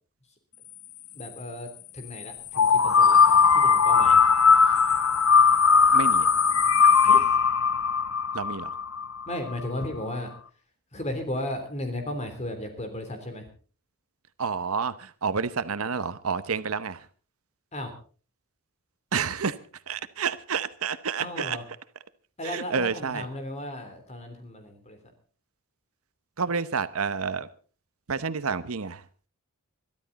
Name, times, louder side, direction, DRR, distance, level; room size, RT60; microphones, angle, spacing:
voice 1, 1.1-1.7 1.9-4.2 7.1-7.2 9.3-10.3 10.9-13.4 17.7-17.9 21.2-21.6 22.4-25.0, left 1 dB, 30° left, 7 dB, 3.4 m, -35 dB
sound 1, 2.5-9.3, left 5 dB, 70° left, 1.0 m, -19 dB
voice 2, 5.9-6.3 8.3-8.8 14.4-17.1 19.1-19.6 19.9-21.6 22.4-23.3 26.4-27.5 28.1-29.0, right 5 dB, 75° right, 14 dB, 0.9 m, -29 dB
22.0 x 13.0 x 4.1 m, 0.39 s
head